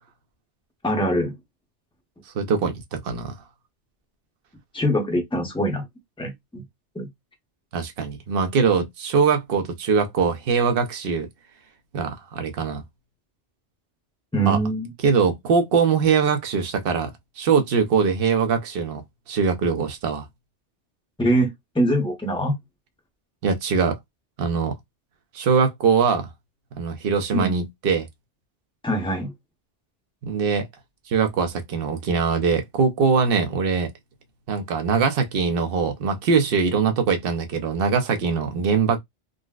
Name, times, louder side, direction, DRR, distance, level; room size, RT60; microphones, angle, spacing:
voice 1, 0.8-1.3 4.7-5.8 6.2-6.6 6.9-7.1 14.3-14.9 21.2-22.6 27.3-27.5 28.8-29.3, right 1 dB, 5° left, 0.7 m, -23 dB
voice 2, 2.3-3.3 7.7-11.3 11.9-12.8 14.5-14.6 15.0-17.1 17.4-19.0 19.3-20.3 23.4-24.0 24.4-24.8 25.3-26.3 26.7-28.1 30.2-30.7 31.1-33.9 34.5-39.0, right 5 dB, 60° right, 0.8 m, -22 dB
3.9 x 2.0 x 2.3 m
omnidirectional pair, 1.2 m